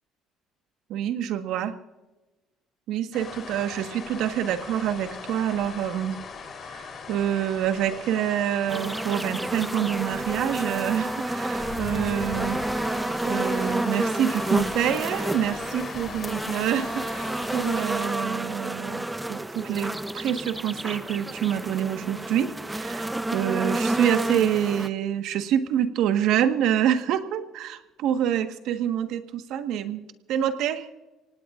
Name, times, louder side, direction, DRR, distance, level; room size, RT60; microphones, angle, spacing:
voice 1, 0.9-1.7 2.9-6.2 6.7-12.6 13.2-30.9, right 10 dB, 75° right, 8 dB, 1.5 m, -27 dB
sound 1, 3.1-18.0, left 5 dB, 50° left, 3.9 m, -39 dB
sound 2, 8.7-24.9, right 1 dB, 10° right, 0.8 m, -30 dB
26.0 x 18.5 x 2.5 m, 1.1 s
cardioid pair, 90°, 0 cm